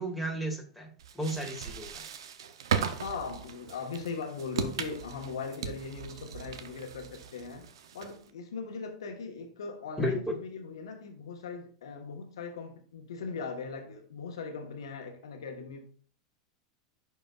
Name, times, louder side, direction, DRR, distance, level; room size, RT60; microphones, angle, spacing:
voice 1, 0.0-1.9 10.0-10.4, equal, ahead, 2.4 m, -33 dB
sound 1, 1.0-8.3, right 7 dB, 80° right, 0.7 m, -37 dB
voice 2, 3.0-7.7 7.9-15.9, left 5 dB, 80° left, 1.4 m, -39 dB
10.5 x 4.6 x 2.5 m
hypercardioid pair, 100°, 3 cm